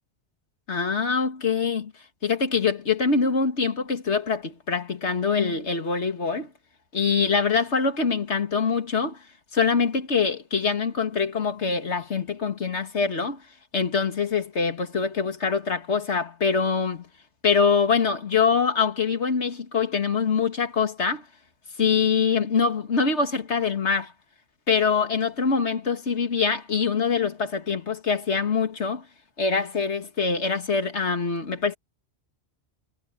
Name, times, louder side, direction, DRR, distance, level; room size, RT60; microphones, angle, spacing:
voice 1, 0.7-1.9 2.2-6.5 6.9-9.2 9.5-13.4 13.7-17.1 17.4-21.2 21.8-24.1 24.7-29.0 29.4-31.7, left 5 dB, 85° left, 2.2 m, -24 dB
omnidirectional pair, 1.1 m